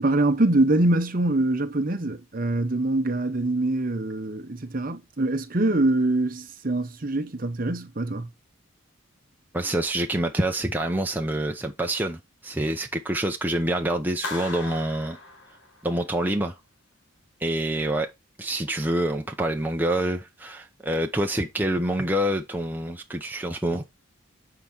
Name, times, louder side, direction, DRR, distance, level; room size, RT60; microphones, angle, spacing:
voice 1, 0.0-8.3, right 2 dB, 40° right, 0.8 m, -24 dB
voice 2, 9.5-15.2 15.8-16.5 17.4-18.1 18.4-23.8, right 1 dB, 10° right, 0.7 m, -26 dB
Clapping, 14.2-16.1, left 2 dB, 60° left, 2.0 m, -37 dB
7.5 x 4.9 x 4.4 m
head